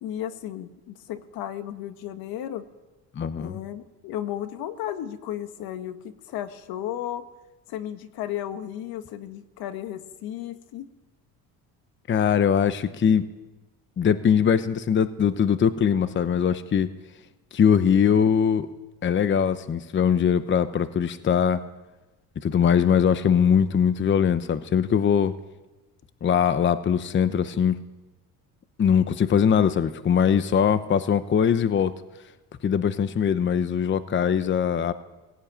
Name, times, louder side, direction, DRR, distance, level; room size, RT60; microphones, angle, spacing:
voice 1, 0.0-2.7 3.4-7.3 7.7-10.9, left 11 dB, 70° left, 10 dB, 1.7 m, -34 dB
voice 2, 3.2-3.6 12.1-13.2 14.0-16.9 17.5-18.7 19.0-21.6 22.4-25.3 26.2-27.8 28.8-31.9 32.6-34.9, left 7 dB, 30° left, 13 dB, 0.9 m, -21 dB
19.0 x 16.5 x 8.9 m, 1.1 s
cardioid pair, 110°, 37 cm